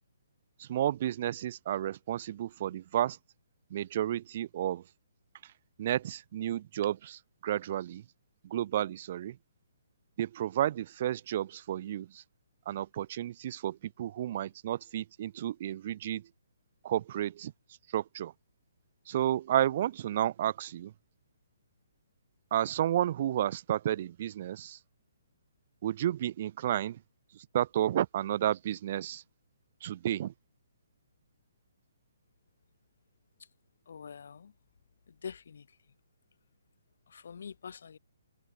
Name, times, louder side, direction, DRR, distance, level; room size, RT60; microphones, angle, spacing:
voice 1, 0.6-3.2 3.7-4.8 5.8-8.0 8.5-9.4 10.2-12.2 12.7-16.2 16.8-17.5 17.9-18.3 19.1-20.9 22.5-24.8 25.8-27.0 27.5-29.2 29.8-30.3, right 11 dB, 45° right, 0.4 m, -31 dB
voice 2, 33.8-34.5 35.1-35.9 37.1-38.0, left 6 dB, 65° left, 3.4 m, -45 dB
hypercardioid pair, 150°, 0 cm